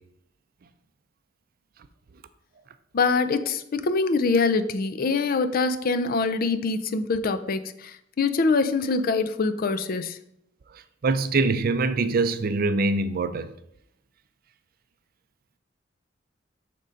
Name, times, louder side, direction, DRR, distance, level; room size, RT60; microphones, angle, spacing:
voice 1, 2.9-10.2, left 4 dB, 50° left, 0.5 m, -24 dB
voice 2, 11.0-13.5, right 3 dB, 50° right, 0.5 m, -23 dB
6.6 x 3.7 x 5.1 m
head